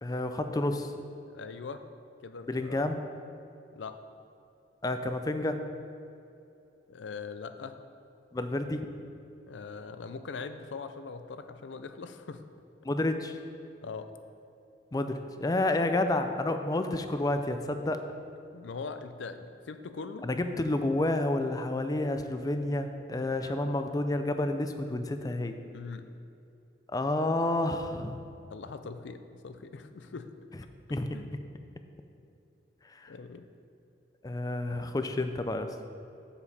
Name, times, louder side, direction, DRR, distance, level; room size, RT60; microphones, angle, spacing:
voice 1, 0.0-0.9 2.5-3.0 4.8-5.6 8.3-8.8 12.8-13.4 14.9-18.1 20.2-25.6 26.9-28.2 30.9-31.2 32.9-33.1 34.2-35.7, left 2 dB, 20° left, 8 dB, 0.4 m, -30 dB
voice 2, 1.3-1.8 2.2-2.8 3.7-3.9 6.9-7.8 9.5-12.4 13.8-14.1 18.5-20.3 23.4-23.7 25.7-26.1 28.5-30.3 31.1-31.3 33.1-33.5, left 4 dB, 75° left, 9 dB, 0.5 m, -41 dB
7.1 x 7.1 x 4.1 m, 2.7 s
head